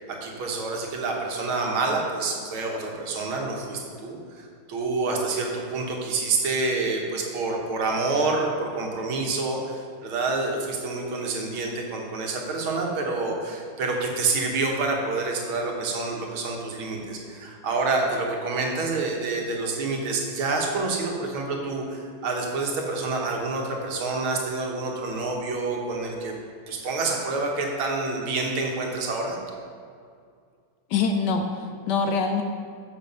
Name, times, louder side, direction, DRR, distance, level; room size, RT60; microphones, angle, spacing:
voice 1, 0.0-26.3 26.7-29.4, right 3 dB, 80° right, 0 dB, 2.0 m, -28 dB
voice 2, 30.9-32.4, left 4 dB, 75° left, 5 dB, 1.0 m, -24 dB
7.2 x 6.3 x 5.4 m, 2.2 s
omnidirectional pair, 2.3 m